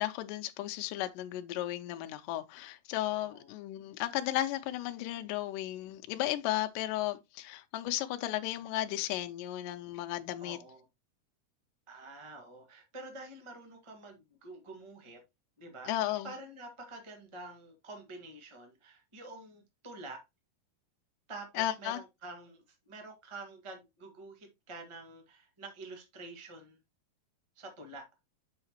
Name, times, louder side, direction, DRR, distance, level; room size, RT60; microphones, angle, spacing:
voice 1, 0.0-10.6 15.9-16.3 21.6-22.0, left 14 dB, 80° left, 2.2 m, -34 dB
voice 2, 10.4-10.8 11.9-15.2 15.6-20.2 21.3-26.8 27.5-28.0, right 2 dB, 25° right, 0.7 m, -48 dB
7.9 x 5.7 x 3.0 m
omnidirectional pair, 3.9 m